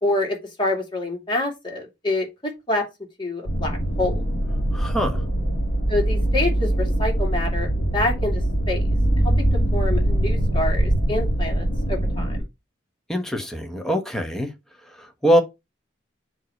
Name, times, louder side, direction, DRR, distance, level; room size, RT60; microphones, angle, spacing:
voice 1, 0.0-2.3 2.7-2.8 3.2-4.2 5.9-7.7 7.9-8.4 8.7-8.9 9.7-12.4, left 2 dB, 25° left, 2.6 m, -26 dB
sound 1, 3.5-12.4, right 1 dB, 40° left, 2.4 m, -22 dB
voice 2, 4.7-5.2 13.1-14.5 15.0-15.4, equal, ahead, 1.2 m, -23 dB
7.6 x 3.2 x 6.2 m
head